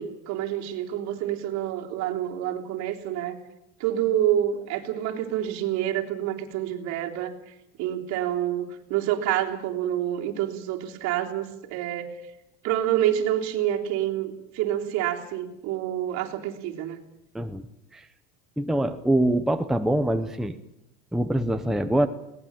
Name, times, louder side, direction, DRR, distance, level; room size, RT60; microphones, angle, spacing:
voice 1, 0.0-3.4 3.8-12.2 12.6-17.0, right 11 dB, 55° right, 1 dB, 3.5 m, -28 dB
voice 2, 17.3-17.7 17.9-18.1 18.6-20.6 21.1-22.1, right 1 dB, ahead, 7 dB, 0.8 m, -24 dB
21.5 x 18.5 x 8.8 m, 0.83 s
cardioid pair, 160°, 33 cm